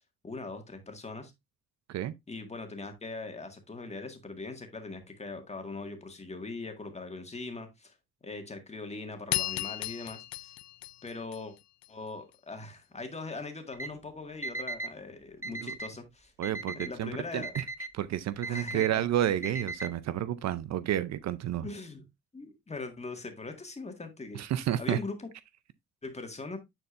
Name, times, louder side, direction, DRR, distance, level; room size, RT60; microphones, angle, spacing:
voice 1, 0.2-1.3 2.3-7.9 8.2-10.5 11.0-11.5 11.9-16.3 16.7-17.5 18.4-19.0 21.6-22.0 22.3-24.4 24.8-25.3 26.0-26.6, left 3 dB, 20° left, 1.7 m, -41 dB
sound 1, 9.3-11.9, left 15 dB, 65° left, 0.5 m, -35 dB
Alarm, 13.7-13.9 14.4-14.9 15.4-15.9 16.4-16.9 17.4-17.9 18.4-18.9 19.4-19.9, right 2 dB, 10° right, 0.7 m, -37 dB
voice 2, 16.4-17.6 17.9-21.7 24.3-25.0, right 11 dB, 60° right, 0.5 m, -30 dB
9.8 x 4.4 x 2.5 m
cardioid pair, 90°, 30 cm